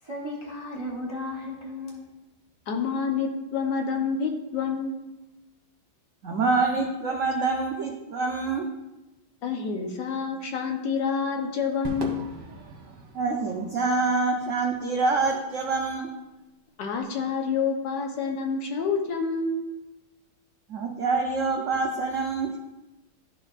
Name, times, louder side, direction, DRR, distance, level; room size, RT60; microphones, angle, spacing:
voice 1, 0.0-2.1, left 1 dB, 35° right, -3 dB, 0.5 m, -35 dB
voice 2, 2.7-5.2 9.4-12.2 13.9-14.0 16.8-19.6, left 5 dB, 65° left, 2 dB, 1.3 m, -28 dB
voice 3, 6.2-8.7 13.1-16.1 20.7-22.6, right 3 dB, 85° right, 1 dB, 0.7 m, -26 dB
Crowd / Fireworks, 11.8-16.3, right 3 dB, 65° right, 1.7 m, -41 dB
12.5 x 4.3 x 2.4 m, 1.0 s
omnidirectional pair, 2.2 m